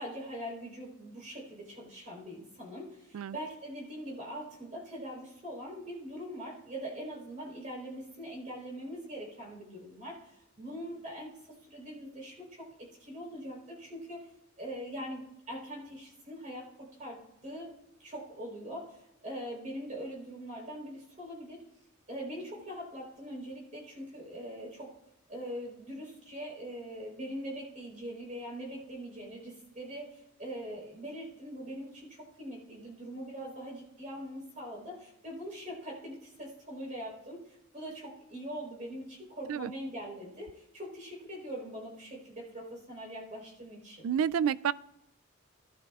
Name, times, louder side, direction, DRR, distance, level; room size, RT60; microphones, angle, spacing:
voice 1, 0.0-11.3 11.6-14.3 14.6-17.7 18.0-21.6 22.1-24.9 25.3-44.1, equal, 35° right, -3 dB, 4.0 m, -42 dB
voice 2, 44.0-44.7, right 8 dB, 80° right, 19 dB, 0.3 m, -29 dB
17.0 x 11.5 x 2.4 m, 0.83 s
head